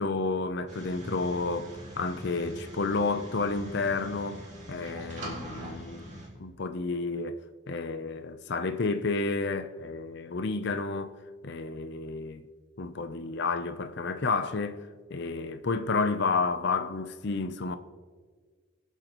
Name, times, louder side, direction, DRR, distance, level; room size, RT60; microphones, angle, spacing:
voice 1, 0.0-4.4 4.7-7.4 7.7-11.1 11.4-12.4 12.8-14.8 15.1-17.8, left 3 dB, 55° left, 0.6 m, -31 dB
sound 1, 0.7-6.3, right 1 dB, 35° right, 2.4 m, -43 dB
23.0 x 8.1 x 3.0 m
head